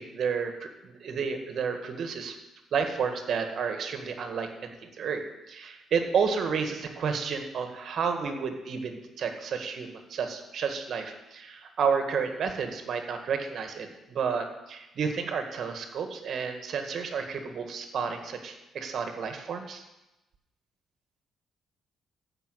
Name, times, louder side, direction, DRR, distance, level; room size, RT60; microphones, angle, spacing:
voice 1, 0.0-2.4 2.7-5.2 5.5-19.8, right 6 dB, 60° right, 5 dB, 1.8 m, -31 dB
14.0 x 5.9 x 7.9 m, 0.98 s
cardioid pair, 90°, 0 cm